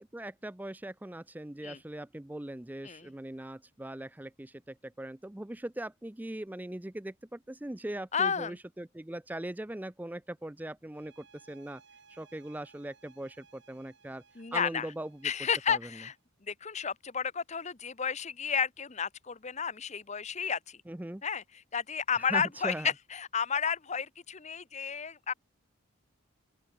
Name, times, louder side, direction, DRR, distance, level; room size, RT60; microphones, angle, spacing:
voice 1, 0.0-11.8 12.1-14.2 14.5-15.3 15.7-15.8 20.9-21.2 22.2-22.9, right 1 dB, 10° right, 0.4 m, -40 dB
voice 2, 8.1-8.6 14.4-14.9 15.2-16.1 16.5-20.8 21.2-25.3, left 6 dB, 30° left, 0.8 m, -32 dB
sound 1, 10.9-16.2, right 5 dB, 55° right, 3.1 m, -62 dB
open air
head